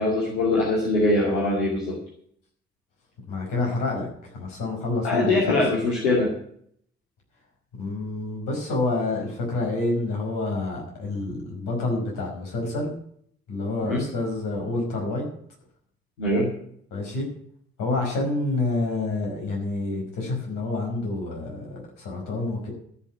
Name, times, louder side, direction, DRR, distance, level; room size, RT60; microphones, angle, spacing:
voice 1, 0.0-1.9 5.0-6.3 13.9-14.0 16.2-16.5, left 2 dB, 85° left, -5 dB, 2.4 m, -22 dB
voice 2, 3.3-5.6 7.8-12.9 13.5-15.3 16.9-17.3 17.8-22.7, left 2 dB, 70° left, -1 dB, 5.3 m, -28 dB
14.0 x 6.0 x 9.2 m, 0.65 s
hypercardioid pair, 40°, 34 cm